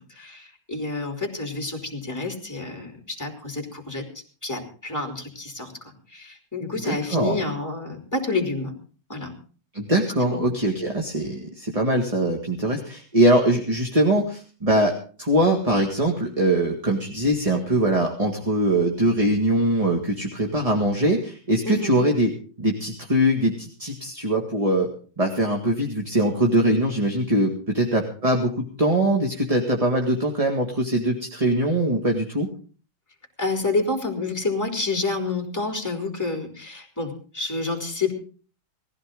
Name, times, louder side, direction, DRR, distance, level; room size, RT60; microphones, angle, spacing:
voice 1, 0.1-8.7 9.1-9.3 10.2-10.4 21.6-22.0 33.4-38.1, left 3 dB, 10° left, 1 dB, 3.7 m, -29 dB
voice 2, 6.8-7.4 9.7-14.9 15.2-22.3 22.6-24.9 25.2-28.5 28.8-32.5, right 1 dB, 20° right, 1 dB, 2.0 m, -22 dB
19.5 x 15.5 x 3.9 m, 0.40 s
omnidirectional pair, 2.2 m